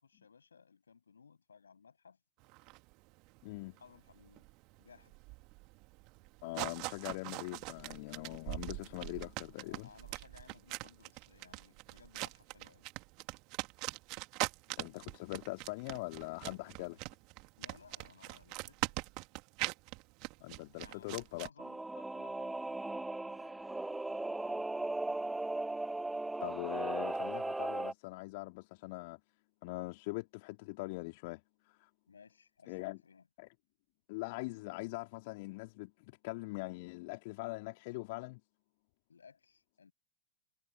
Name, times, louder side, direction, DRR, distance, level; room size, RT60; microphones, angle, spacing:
voice 1, 0.0-2.2 3.8-4.5 4.8-5.2 9.6-12.9 17.6-18.9 20.8-23.9 24.4-25.0 32.1-33.3 39.1-39.9, left 6 dB, 70° left, 7.8 m, -60 dB
sound 1, 2.4-21.5, right 26 dB, 40° right, 2.6 m, -42 dB
voice 2, 3.4-3.8 6.4-9.9 14.8-17.0 20.4-21.5 26.4-29.2 29.6-31.9 32.7-33.0 33.4-33.5 34.1-38.4, left 25 dB, 50° left, 2.6 m, -42 dB
Singing / Musical instrument, 21.6-27.9, right 2 dB, 5° right, 0.6 m, -37 dB
figure-of-eight pair, 90°, 0 cm